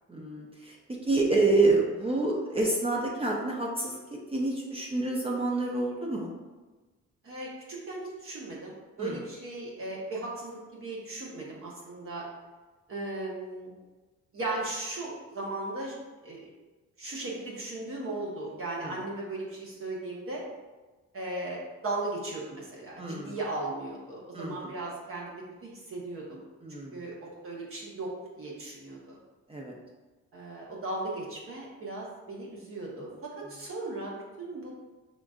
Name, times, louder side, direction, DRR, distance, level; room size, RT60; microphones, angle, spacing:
voice 1, 0.1-4.0 4.3-6.3 9.0-9.2 18.8-19.0 23.0-23.4 24.3-24.8 26.6-27.0 29.5-29.8, right 2 dB, 20° right, -2 dB, 0.6 m, -28 dB
voice 2, 7.2-12.2 12.9-13.8 14.3-15.9 16.2-16.4 17.0-20.4 21.1-26.4 26.9-29.2 30.3-34.7, right 2 dB, 45° right, -4 dB, 1.1 m, -37 dB
5.9 x 2.5 x 2.4 m, 1.2 s
cardioid pair, 90°, 30 cm